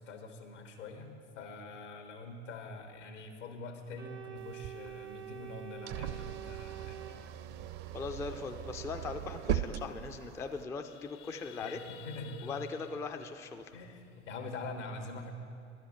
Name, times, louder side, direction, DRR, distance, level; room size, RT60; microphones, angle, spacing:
voice 1, 0.0-7.0 11.6-12.6 13.7-15.3, left 3 dB, 75° left, 5 dB, 1.2 m, -44 dB
Organ, 4.0-7.9, right 10 dB, 85° right, 0.7 m, -47 dB
sound 1, 4.4-10.6, right 11 dB, 45° right, 0.5 m, -39 dB
voice 2, 7.9-11.8 12.4-13.8, left 4 dB, 10° left, 6 dB, 0.3 m, -40 dB
sound 2, 9.5-9.6 9.8-10.0 10.4-14.7, left 8 dB, 55° left, 0.7 m, -52 dB
11.5 x 5.7 x 7.6 m, 2.6 s
figure-of-eight pair, 70°, 37 cm